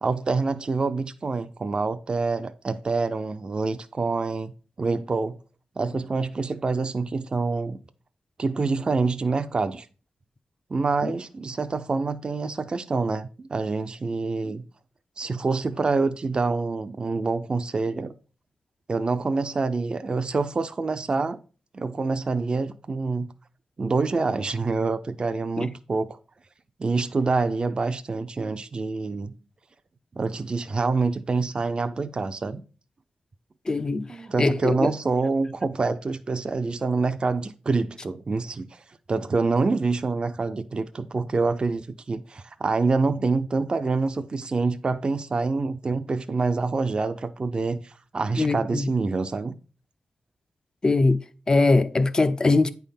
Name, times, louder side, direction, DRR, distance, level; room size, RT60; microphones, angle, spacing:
voice 1, 0.0-4.5 4.8-5.4 5.8-7.8 8.4-9.9 10.7-14.6 15.2-18.1 18.9-21.4 21.7-23.3 23.8-26.2 26.8-29.3 30.2-32.6 34.1-38.8 39.1-49.6, right 4 dB, 35° right, 0.5 m, -26 dB
voice 2, 33.7-34.1 34.4-34.9 48.4-48.9 50.8-52.7, left 3 dB, 25° left, 0.5 m, -22 dB
9.0 x 3.5 x 5.7 m
wide cardioid pair, 130°, 3 cm